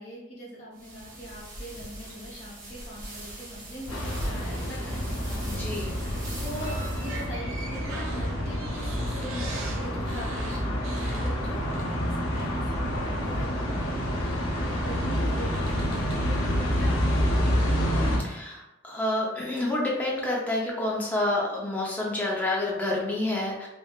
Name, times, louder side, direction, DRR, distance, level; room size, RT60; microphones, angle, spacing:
voice 1, 0.0-5.5 5.8-17.7 18.0-18.5, equal, 35° left, -7 dB, 1.1 m, -42 dB
sound 1, 0.7-7.3, right 1 dB, 40° right, 0.8 m, -40 dB
sound 2, 3.9-18.2, equal, 75° left, 0.5 m, -28 dB
voice 2, 5.5-5.9 18.2-23.7, left 1 dB, 5° left, -4 dB, 0.5 m, -28 dB
sound 3, 6.6-12.1 12.3-12.6 13.8-14.0 14.5-16.3, right 3 dB, 65° right, 0.5 m, -43 dB
3.4 x 2.3 x 2.3 m, 0.95 s
head